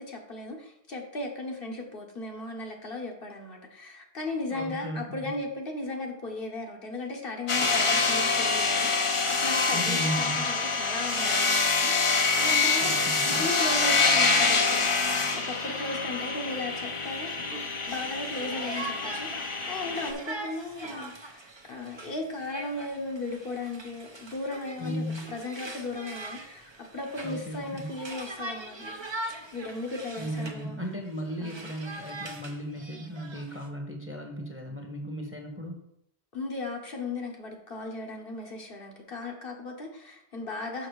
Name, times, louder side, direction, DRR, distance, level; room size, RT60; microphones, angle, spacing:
voice 1, 0.0-12.9 13.3-15.0 15.3-17.6 17.9-28.9 29.5-30.8 31.4-31.7 36.3-40.9, left 2 dB, 60° left, 1 dB, 1.3 m, -36 dB
voice 2, 4.5-5.3 9.7-10.4 12.8-13.5 24.8-25.3 27.2-28.0 30.2-35.7, equal, 10° right, 2 dB, 1.1 m, -36 dB
sound 1, 7.5-20.1, left 4 dB, 35° left, 0.7 m, -26 dB
Conversation, 17.9-30.7 31.0-33.7, right 2 dB, 30° right, 0.8 m, -42 dB
6.4 x 6.0 x 4.7 m, 0.77 s
omnidirectional pair, 1.1 m